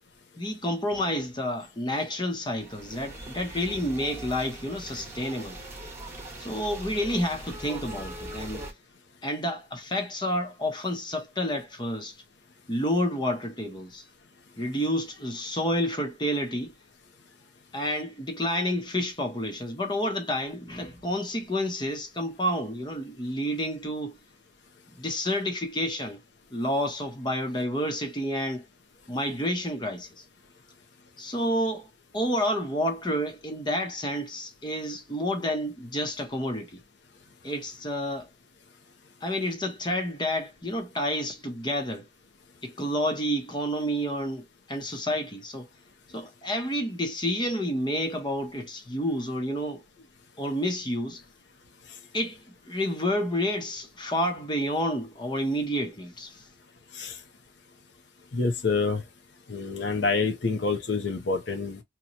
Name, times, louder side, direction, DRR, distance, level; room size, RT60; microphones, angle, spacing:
voice 1, 0.4-5.6 6.4-8.7 9.2-12.2 12.7-14.0 14.6-16.7 17.7-24.2 25.0-26.2 26.5-28.6 29.1-30.2 31.2-31.9 32.1-36.8 37.4-38.3 39.2-42.0 42.6-45.7 46.1-49.8 50.4-51.2 52.1-52.4 52.6-56.5, equal, 25° left, 0.8 m, -29 dB
sound 1, 2.6-8.7, right 1 dB, 15° right, 1.1 m, -41 dB
voice 2, 58.3-59.0 59.5-61.8, left 4 dB, 70° left, 0.8 m, -27 dB
3.0 x 2.2 x 4.0 m
head